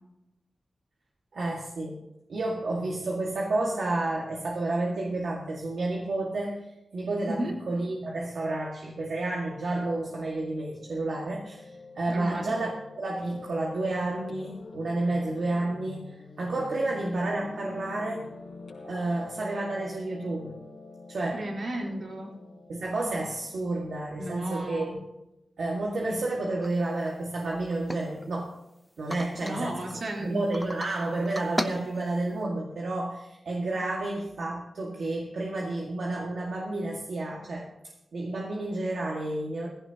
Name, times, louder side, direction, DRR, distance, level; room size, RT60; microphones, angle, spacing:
voice 1, 1.3-2.0 2.3-6.6 6.9-12.7 13.0-18.3 18.8-20.6 21.1-21.4 22.7-24.9 25.6-28.5 29.0-29.8 30.2-37.7 38.1-39.7, right 2 dB, 80° right, -3 dB, 2.0 m, -30 dB
Piano, 9.3-23.7, left 3 dB, 80° left, 4.0 m, -46 dB
voice 2, 12.1-12.5 21.3-22.3 24.2-25.0 29.4-30.4, right 1 dB, 60° right, -1 dB, 3.8 m, -34 dB
sound 1, 26.6-26.7 27.1-27.2 27.5-28.6 29.1-30.0 30.5-30.9 31.2-32.4, left 1 dB, 5° left, 0.8 m, -36 dB
18.5 x 15.5 x 3.0 m, 0.93 s
wide cardioid pair, 120°, 0 cm